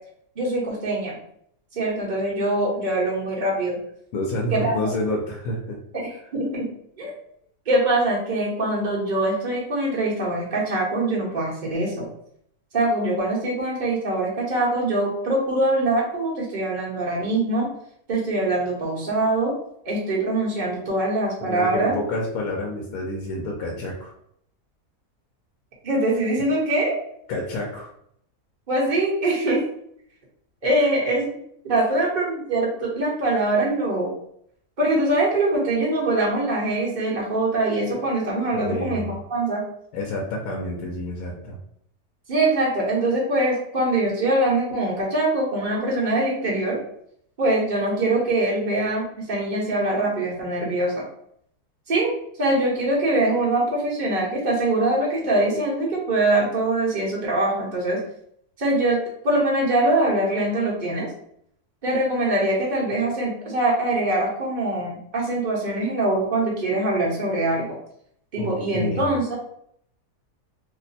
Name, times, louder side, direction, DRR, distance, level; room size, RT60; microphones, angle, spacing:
voice 1, 0.4-1.1 1.7-3.8 4.5-4.9 5.9-6.7 7.0-7.2 7.7-12.1 12.7-17.7 18.1-19.5 19.8-21.9 25.8-27.0 28.7-29.6 30.6-31.3 31.6-34.1 34.8-39.6 42.3-46.8 47.4-51.0 51.9-58.0 58.6-61.1 61.8-67.8 68.3-69.4, right 2 dB, 35° right, -4 dB, 1.0 m, -23 dB
voice 2, 4.1-5.8 21.4-24.1 27.3-27.9 30.8-30.9 38.5-39.2 39.9-41.6 68.4-69.1, left 1 dB, 70° left, -1 dB, 1.1 m, -29 dB
2.9 x 2.1 x 4.0 m, 0.70 s
omnidirectional pair, 1.6 m